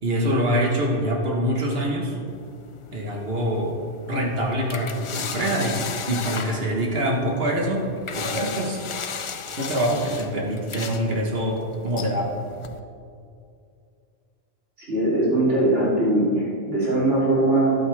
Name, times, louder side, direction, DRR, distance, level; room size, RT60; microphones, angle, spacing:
voice 1, 0.0-2.2 2.9-3.8 4.1-7.8 8.1-8.8 9.6-11.6 11.8-12.3, equal, 55° right, 0 dB, 1.6 m, -24 dB
sound 1, 2.3-12.8, left 6 dB, 50° left, 0.3 m, -36 dB
voice 2, 14.9-17.7, right 1 dB, 75° right, -8 dB, 3.7 m, -21 dB
13.0 x 11.5 x 3.5 m, 2.4 s
omnidirectional pair, 1.2 m